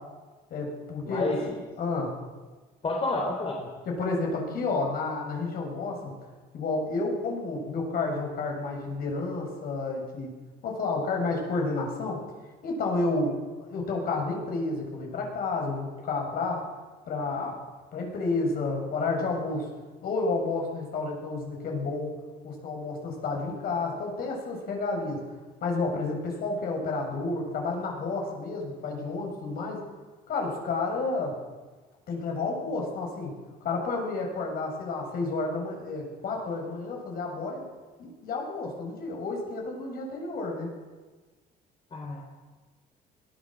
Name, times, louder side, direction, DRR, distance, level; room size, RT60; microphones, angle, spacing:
voice 1, 0.5-1.3 1.8-2.1 3.9-6.1 6.5-10.3 10.6-12.2 12.6-13.4 13.7-16.7 17.1-17.6 17.9-19.7 20.0-22.1 22.4-25.2 25.6-29.8 30.3-31.4 32.1-33.3 33.6-37.6 38.0-40.7, left 3 dB, 60° left, 1 dB, 7.5 m, -30 dB
voice 2, 1.0-1.5 2.8-3.7 41.9-42.2, left 2 dB, 35° left, 1 dB, 3.8 m, -29 dB
21.5 x 16.0 x 7.7 m, 1.3 s
cardioid pair, 110°, 17 cm